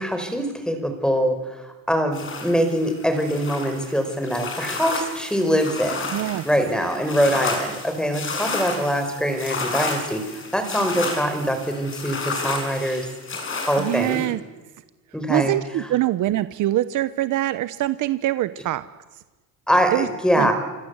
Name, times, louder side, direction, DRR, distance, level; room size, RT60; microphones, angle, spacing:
voice 1, 0.0-6.1 6.4-13.1 13.7-14.2 15.1-15.6 19.7-20.5, equal, ahead, 7 dB, 4.7 m, -23 dB
sound 1, 2.1-14.3, left 3 dB, 35° left, 6.5 m, -31 dB
voice 2, 6.1-6.4 13.8-14.4 15.3-18.8 19.9-20.1 20.4-20.5, right 14 dB, 55° right, 13 dB, 1.0 m, -23 dB
27.0 x 26.0 x 8.2 m, 1.2 s
cardioid pair, 145°, 37 cm